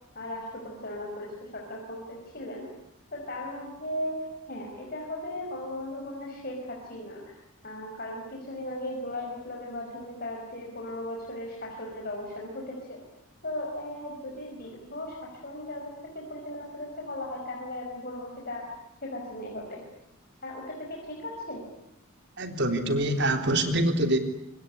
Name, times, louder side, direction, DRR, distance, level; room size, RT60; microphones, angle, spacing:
voice 1, 0.1-2.7 3.1-13.0 13.4-18.7 19.0-19.8 20.4-21.6, left 1 dB, 45° left, 0 dB, 5.5 m, -37 dB
voice 2, 22.4-24.2, right 1 dB, 55° right, 7 dB, 3.7 m, -25 dB
26.5 x 23.0 x 9.8 m, 0.84 s
head